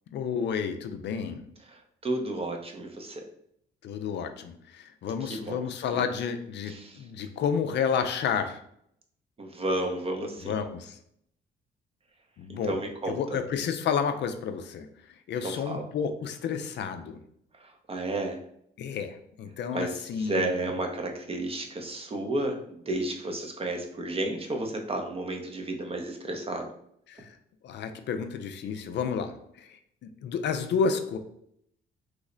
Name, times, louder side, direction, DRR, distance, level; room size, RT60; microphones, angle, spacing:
voice 1, 0.1-1.4 3.8-8.6 10.4-11.0 12.4-12.8 13.1-14.9 15.3-17.2 18.8-20.7 27.1-27.4 27.6-31.2, left 6 dB, 60° left, 8 dB, 0.4 m, -31 dB
voice 2, 1.7-3.2 5.2-5.6 5.9-6.0 6.7-7.0 9.4-10.5 12.5-13.4 15.4-15.8 17.9-18.4 19.7-26.7, right 2 dB, 30° right, 3 dB, 0.6 m, -32 dB
3.1 x 2.0 x 3.7 m, 0.70 s
cardioid pair, 90°, 20 cm